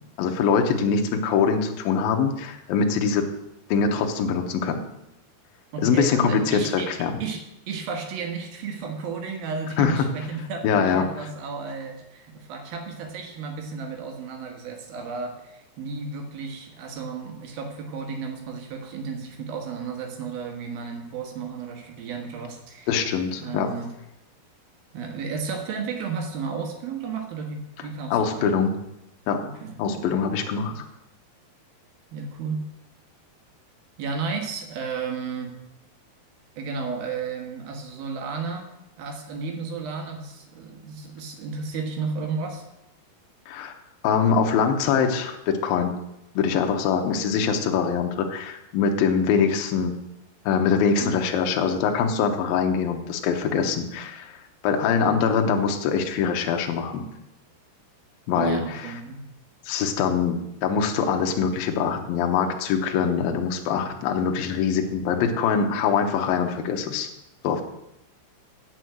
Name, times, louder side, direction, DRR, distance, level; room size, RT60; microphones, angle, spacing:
voice 1, 0.2-3.3 3.7-4.8 5.8-7.2 9.8-10.0 10.6-11.1 22.9-23.7 28.1-28.7 29.3-29.4 29.8-30.8 43.5-43.7 44.0-46.0 46.4-50.0 50.5-54.3 54.6-57.0 58.3-58.9 59.7-67.1 67.4-67.6, left 6 dB, 70° left, 4 dB, 2.5 m, -23 dB
voice 2, 5.7-6.9 7.2-23.1 23.4-23.9 24.9-28.6 29.4-30.1 30.7-30.8 32.1-32.6 34.0-35.5 36.6-38.7 39.0-42.6 51.0-51.2 58.3-59.2, right 5 dB, 65° right, 4 dB, 3.0 m, -33 dB
9.3 x 6.3 x 7.7 m, 0.86 s
omnidirectional pair, 4.8 m